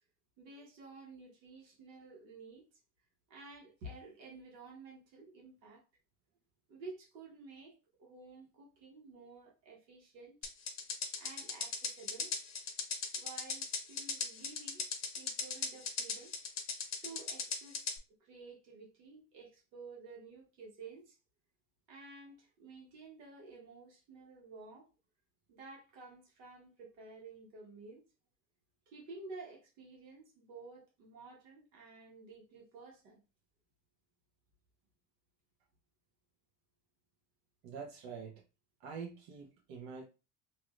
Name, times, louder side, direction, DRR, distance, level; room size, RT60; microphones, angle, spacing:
voice 1, 0.4-2.6 3.3-5.8 6.7-10.4 11.2-12.3 13.1-14.9 15.2-16.4 17.0-17.8 18.2-21.2 21.9-24.9 25.5-28.0 28.9-33.2, right 3 dB, 85° right, 1.6 m, -52 dB
sound 1, 10.4-18.0, left 5 dB, 35° left, 0.8 m, -38 dB
voice 2, 37.6-38.4 38.8-40.0, right 5 dB, 65° right, 1.1 m, -45 dB
2.9 x 2.9 x 2.5 m
hypercardioid pair, 85°, 49 cm